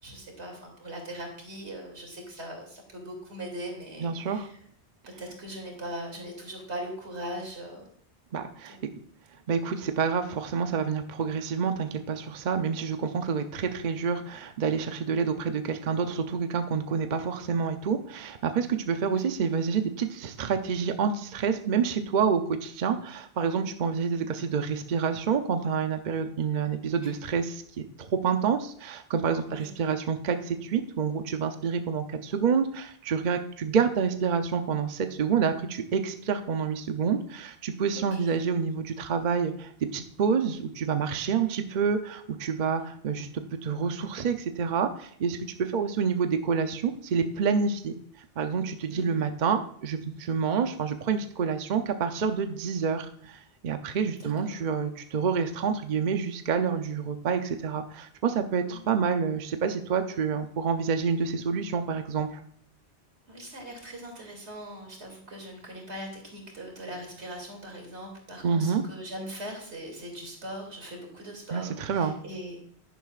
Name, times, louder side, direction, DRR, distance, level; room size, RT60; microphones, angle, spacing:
voice 1, 0.0-4.5 5.2-7.8 8.7-8.8 19.1-19.3 24.2-24.4 27.0-27.2 29.5-29.7 38.1-38.4 48.9-49.2 54.2-54.6 58.7-58.9 63.3-72.6, equal, 85° right, 1 dB, 2.9 m, -40 dB
voice 2, 4.0-4.5 8.3-8.8 9.5-43.3 43.6-47.9 48.4-62.4 68.4-68.8 71.5-72.2, right 6 dB, 50° right, 7 dB, 0.7 m, -28 dB
11.0 x 10.0 x 2.4 m, 0.62 s
omnidirectional pair, 1.1 m